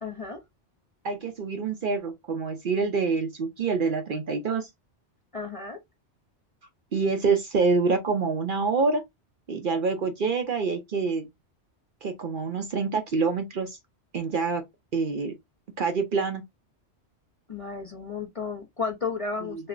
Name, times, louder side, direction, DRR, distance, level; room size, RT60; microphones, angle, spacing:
voice 1, 0.0-0.4 5.3-5.8 17.5-19.7, left 5 dB, 40° left, 0.6 m, -33 dB
voice 2, 1.0-4.7 6.9-9.0 9.5-11.3 12.0-13.8 14.1-14.6 14.9-15.3 15.8-16.4, right 4 dB, 55° right, 0.7 m, -26 dB
5.7 x 2.0 x 2.4 m
omnidirectional pair, 1.2 m